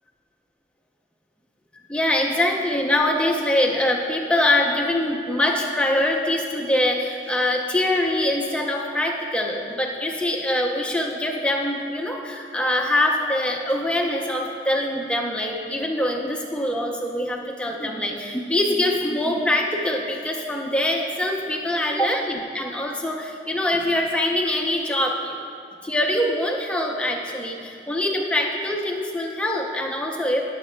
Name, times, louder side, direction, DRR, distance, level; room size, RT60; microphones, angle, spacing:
voice 1, 1.9-25.4 25.8-30.5, left 1 dB, 5° left, 0 dB, 0.6 m, -24 dB
19.5 x 7.2 x 2.2 m, 2.4 s
head